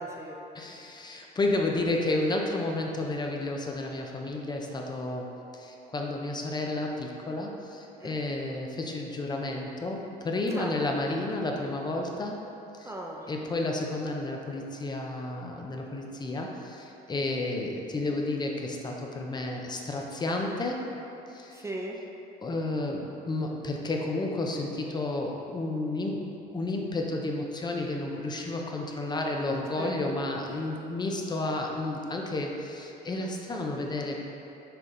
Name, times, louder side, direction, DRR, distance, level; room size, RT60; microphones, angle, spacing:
voice 1, 0.0-0.4 1.6-2.1 8.0-8.1 10.5-10.7 12.8-13.3 21.5-22.0 29.8-29.9, right 2 dB, 15° right, -1 dB, 0.5 m, -38 dB
voice 2, 0.5-12.4 12.8-12.9 13.3-20.8 21.3-21.6 22.4-34.2, left 2 dB, 25° left, 1 dB, 0.6 m, -31 dB
6.9 x 3.9 x 3.8 m, 2.9 s
cardioid pair, 110°, 17 cm